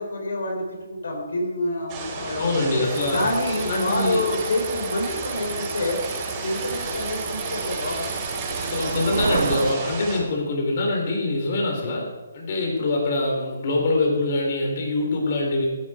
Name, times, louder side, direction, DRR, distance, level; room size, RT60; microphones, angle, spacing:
voice 1, 0.0-2.6 3.1-6.0 6.4-8.1, left 2 dB, 80° left, 1 dB, 3.8 m, -27 dB
sound 1, 1.9-10.2, right 3 dB, 25° right, 4.7 m, -32 dB
voice 2, 2.3-3.2 3.6-4.2 8.6-12.1 12.3-15.7, left 2 dB, 50° left, 0 dB, 4.1 m, -24 dB
sound 2, 2.9-9.7, right 6 dB, 70° right, 0.6 m, -32 dB
14.5 x 12.0 x 4.6 m, 1.3 s
hypercardioid pair, 155°, 0 cm